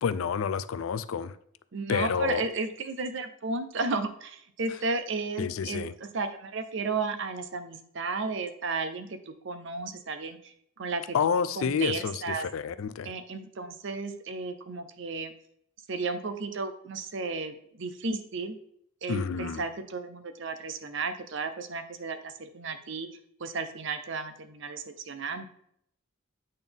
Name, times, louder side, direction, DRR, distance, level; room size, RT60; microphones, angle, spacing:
voice 1, 0.0-1.4 1.9-2.4 5.4-5.9 11.1-13.1 19.1-19.6, left 6 dB, 75° left, 0.4 m, -29 dB
voice 2, 1.7-12.5 13.0-15.3 15.9-18.6 19.0-23.1 23.4-25.4, right 3 dB, 60° right, 0.7 m, -34 dB
8.7 x 4.0 x 3.5 m
head